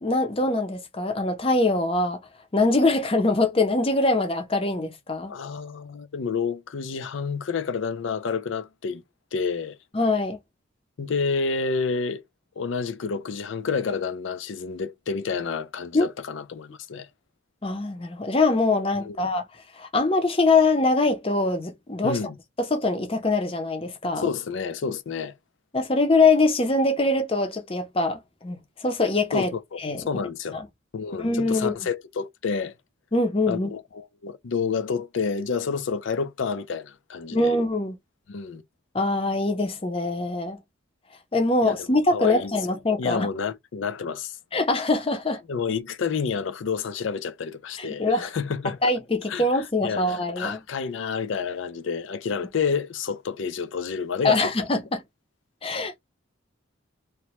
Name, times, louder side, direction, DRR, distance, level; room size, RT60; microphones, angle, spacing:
voice 1, 0.0-2.2 2.5-5.3 9.9-10.4 15.9-16.1 17.6-19.4 19.8-22.2 22.6-24.2 25.7-29.5 29.8-30.1 30.5-30.7 31.2-31.7 33.1-33.7 37.3-38.0 38.9-40.6 41.3-43.3 44.5-45.4 47.8-48.3 48.8-50.6 54.2-55.0 55.6-56.0, left 2 dB, 30° left, 0.6 m, -23 dB
voice 2, 5.3-9.0 9.3-9.8 11.0-12.2 12.6-17.1 19.0-19.3 22.0-22.3 24.2-25.3 29.3-29.8 30.1-30.6 30.9-32.7 33.5-37.5 38.3-38.6 41.6-41.9 42.1-44.4 45.5-48.9 49.3-49.4 49.8-54.5, left 5 dB, 75° left, 0.4 m, -29 dB
3.0 x 2.1 x 2.9 m
head